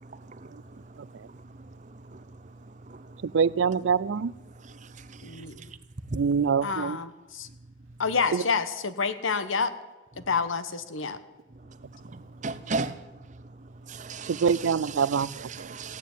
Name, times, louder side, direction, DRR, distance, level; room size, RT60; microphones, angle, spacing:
voice 1, 3.3-4.3 6.1-7.0 14.4-15.3, right 6 dB, 70° right, 20 dB, 0.4 m, -24 dB
voice 2, 5.2-5.6 6.6-7.5 8.0-9.7 10.2-11.2, left 5 dB, 80° left, 12 dB, 1.1 m, -28 dB
voice 3, 12.4-12.9 13.9-16.0, right 4 dB, 40° right, 13 dB, 0.7 m, -34 dB
15.5 x 9.3 x 9.3 m, 1.2 s
head